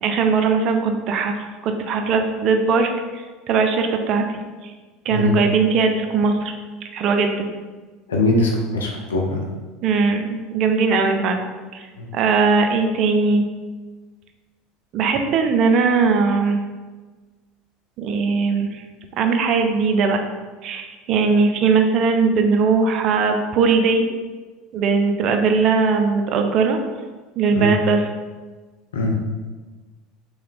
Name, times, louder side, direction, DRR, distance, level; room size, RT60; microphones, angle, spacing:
voice 1, 0.0-1.3 1.6-4.7 5.1-6.5 6.9-7.5 9.8-11.4 11.7-11.9 12.1-13.5 14.9-16.6 18.0-18.8 19.2-20.2 20.6-24.0 24.7-26.8 27.4-28.1, right 4 dB, 55° right, 5 dB, 0.5 m, -19 dB
voice 2, 8.1-9.4 12.0-12.1 27.5-27.7 28.9-29.2, left 2 dB, 85° left, 0 dB, 0.7 m, -21 dB
3.4 x 3.2 x 3.4 m, 1.3 s
hypercardioid pair, 80°, 0 cm